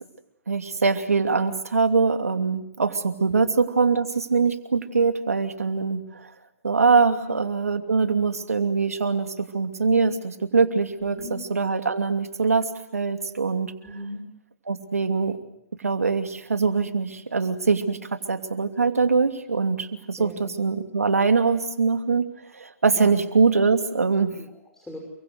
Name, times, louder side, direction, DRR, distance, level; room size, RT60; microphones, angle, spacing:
voice 1, 0.5-6.3 6.6-13.7 14.7-15.4 15.8-24.3, right 4 dB, 85° right, 7 dB, 2.7 m, -23 dB
voice 2, 11.0-11.4 13.8-14.2 20.2-20.4 22.9-23.1 24.3-25.0, left 1 dB, 5° left, 2 dB, 6.3 m, -40 dB
29.5 x 23.5 x 8.1 m, 0.78 s
hypercardioid pair, 120°, 8 cm